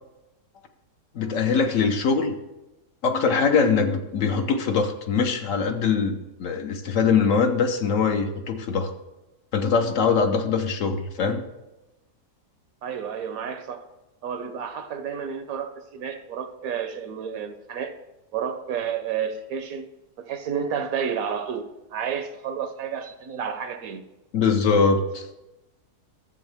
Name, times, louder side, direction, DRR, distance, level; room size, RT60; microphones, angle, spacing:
voice 1, 1.1-2.3 3.0-8.9 9.5-11.4 24.3-25.3, left 5 dB, 60° left, 6 dB, 1.0 m, -22 dB
voice 2, 12.8-13.9 14.2-17.9 18.3-19.9 20.2-24.0, right 7 dB, 70° right, 9 dB, 1.0 m, -31 dB
13.0 x 7.2 x 3.4 m, 0.99 s
omnidirectional pair, 1.7 m